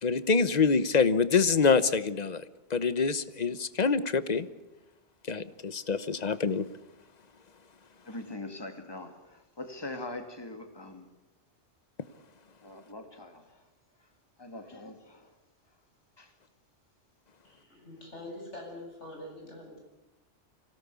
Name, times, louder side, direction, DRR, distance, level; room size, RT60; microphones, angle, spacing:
voice 1, 0.0-2.4 2.7-4.5 5.3-6.7, left 5 dB, 40° left, 14 dB, 1.0 m, -26 dB
voice 2, 8.1-11.1 12.6-13.4 14.4-15.3 16.2-16.3, left 2 dB, 20° left, 5 dB, 2.3 m, -42 dB
voice 3, 17.4-19.8, left 1 dB, 80° left, 0 dB, 8.3 m, -44 dB
25.5 x 17.5 x 8.4 m, 0.95 s
omnidirectional pair, 1.2 m